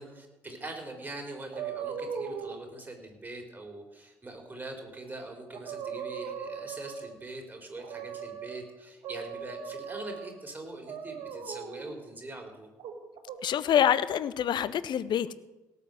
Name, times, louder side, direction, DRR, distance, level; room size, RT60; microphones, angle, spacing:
voice 1, 0.0-12.7, right 2 dB, 20° right, 2 dB, 4.0 m, -43 dB
sound 1, 1.5-2.6 5.1-5.2 5.5-7.2 7.8-8.6 9.0-10.4 10.9-11.9 12.8-13.4, right 7 dB, 55° right, 1.6 m, -38 dB
voice 2, 13.4-15.3, left 9 dB, 50° left, 17 dB, 0.7 m, -26 dB
17.5 x 7.0 x 7.5 m, 1.1 s
figure-of-eight pair, 45°, 10 cm